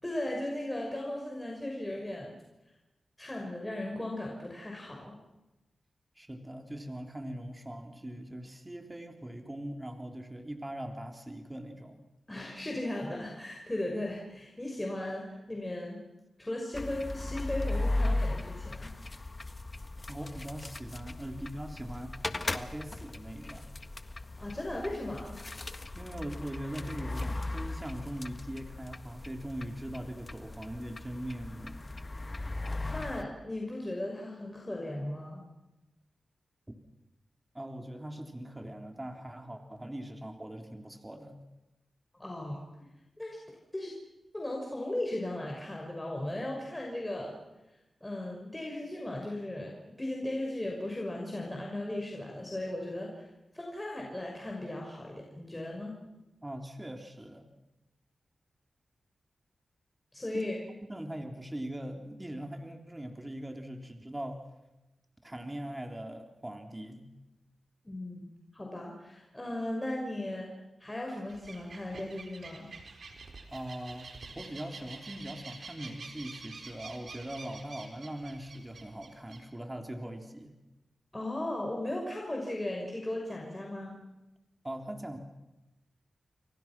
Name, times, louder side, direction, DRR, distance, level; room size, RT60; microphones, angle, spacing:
voice 1, 0.0-2.4 3.2-5.1 12.3-16.0 16.4-18.9 24.4-25.4 32.9-35.4 42.1-42.6 43.2-43.4 43.7-43.9 44.3-47.4 48.0-53.3 53.5-55.9 60.1-60.6 67.8-68.3 68.5-70.5 70.8-72.7 81.1-84.0, left 1 dB, 20° left, 0 dB, 6.0 m, -36 dB
voice 2, 6.2-12.0 20.1-23.7 25.9-31.8 36.7-36.8 37.5-41.4 56.4-57.4 60.3-60.5 60.9-64.4 65.2-67.1 73.5-80.6 84.6-85.2, right 1 dB, 20° right, 4 dB, 3.6 m, -41 dB
sound 1, 16.7-33.2, left 2 dB, 40° left, 1.5 m, -37 dB
sound 2, 71.3-79.4, right 4 dB, 65° right, 4.2 m, -48 dB
30.0 x 23.0 x 6.2 m, 1.0 s
cardioid pair, 50°, 0 cm